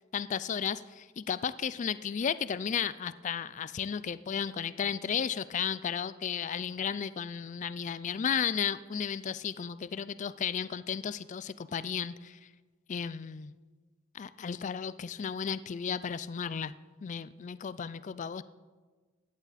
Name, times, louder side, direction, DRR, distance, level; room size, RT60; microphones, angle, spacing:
voice 1, 0.1-12.4 12.9-13.5 14.1-16.7 17.0-18.4, left 7 dB, 35° left, 16 dB, 0.3 m, -34 dB
16.0 x 10.5 x 4.2 m, 1.4 s
head